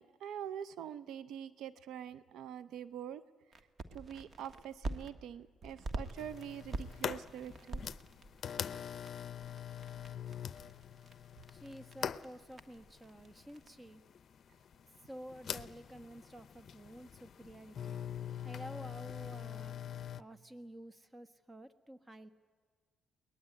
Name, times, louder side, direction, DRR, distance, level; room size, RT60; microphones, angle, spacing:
voice 1, 0.0-3.2 3.9-7.9, right 9 dB, 80° right, 16 dB, 0.6 m, -45 dB
sound 1, 3.5-5.1 5.6-13.7, right 2 dB, 40° right, 1.6 m, -46 dB
sound 2, 6.2-20.2, left 9 dB, 55° left, 0.6 m, -43 dB
voice 2, 11.5-14.0 15.0-18.0 18.4-19.7 20.2-22.3, right 1 dB, 15° right, 12 dB, 1.4 m, -51 dB
22.5 x 19.5 x 9.6 m, 1.5 s
cardioid pair, 90°, 0 cm